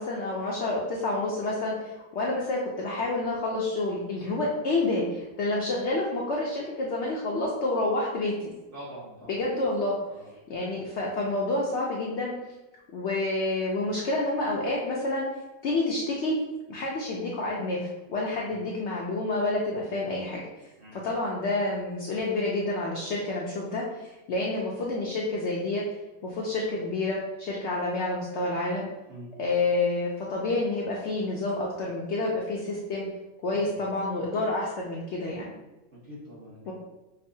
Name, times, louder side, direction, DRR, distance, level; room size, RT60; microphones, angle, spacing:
voice 1, 0.0-8.5 9.3-9.9 10.5-12.3 12.9-15.3 15.6-16.4 16.7-20.5 20.9-25.8 26.2-28.9 29.4-33.1 33.4-35.5 36.7-36.8, left 2 dB, 65° left, -3 dB, 0.7 m, -29 dB
voice 2, 8.7-9.4 10.1-10.3 18.3-18.6 19.6-19.9 20.8-21.1 29.1-29.3 33.5-33.6 35.9-36.7, equal, 40° right, -7 dB, 1.0 m, -45 dB
5.2 x 2.0 x 2.6 m, 1.1 s
omnidirectional pair, 1.5 m